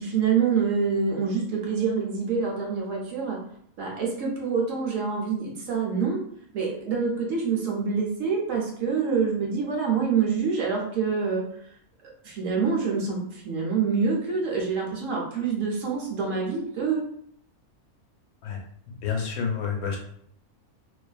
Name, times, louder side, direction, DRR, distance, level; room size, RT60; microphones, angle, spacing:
voice 1, 0.0-3.4 3.8-6.2 6.5-11.4 12.2-17.1, right 5 dB, 65° right, -2 dB, 1.0 m, -26 dB
voice 2, 18.9-20.0, left 6 dB, 80° left, 0 dB, 1.1 m, -29 dB
2.5 x 2.4 x 2.3 m, 0.67 s
omnidirectional pair, 1.5 m